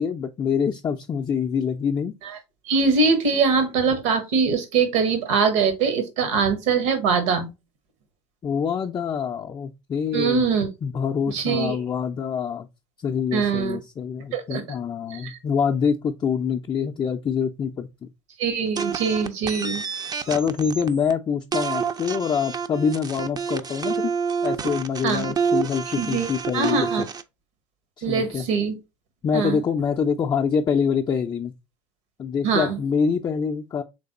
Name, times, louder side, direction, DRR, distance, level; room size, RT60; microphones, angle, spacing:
voice 1, 0.0-2.1 8.4-10.4 10.8-12.7 13.0-18.1 20.2-24.1 24.4-27.1 28.0-28.5 29.2-31.5 32.2-33.8, left 6 dB, 30° left, 0.5 m, -25 dB
voice 2, 2.6-7.5 10.1-10.7 11.3-11.8 13.3-13.8 14.3-14.8 15.1-15.4 18.4-19.8 25.0-25.2 26.0-26.3 26.5-27.0 28.0-28.7 29.3-29.6 32.4-32.8, right 5 dB, 70° right, 1.2 m, -22 dB
sound 1, 18.8-21.1 21.5-27.2, right 6 dB, 25° right, 0.5 m, -28 dB
3.5 x 3.3 x 4.0 m
hypercardioid pair, 70°, 16 cm